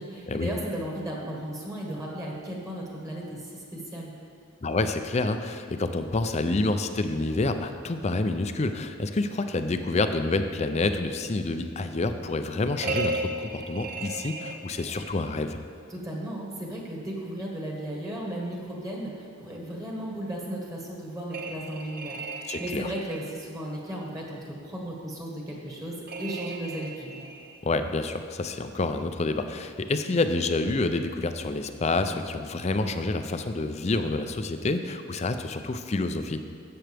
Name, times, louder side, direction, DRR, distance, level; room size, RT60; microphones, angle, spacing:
voice 1, 0.0-4.1 15.9-27.2, right 1 dB, 15° right, -2 dB, 1.5 m, -35 dB
voice 2, 4.6-15.6 22.5-22.9 27.6-36.4, left 2 dB, 35° left, 8 dB, 0.5 m, -28 dB
sound 1, 12.8-15.3 21.3-23.4 26.1-27.6, right 2 dB, 50° right, 0.8 m, -35 dB
13.5 x 7.8 x 3.5 m, 2.2 s
head